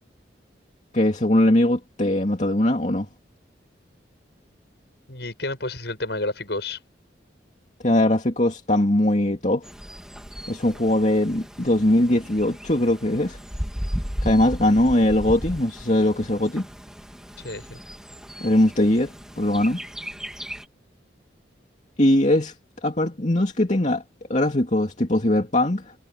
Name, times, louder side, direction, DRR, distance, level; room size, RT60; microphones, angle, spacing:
voice 1, 0.9-3.1 7.8-9.6 10.5-13.4 14.2-16.7 18.4-19.8 22.0-22.5 22.8-24.0 24.3-25.9, left 1 dB, 40° left, 2.5 m, -21 dB
voice 2, 5.1-6.8 17.4-17.8, left 2 dB, 65° left, 7.5 m, -30 dB
Bird, 9.6-20.7, equal, 5° right, 2.3 m, -36 dB
head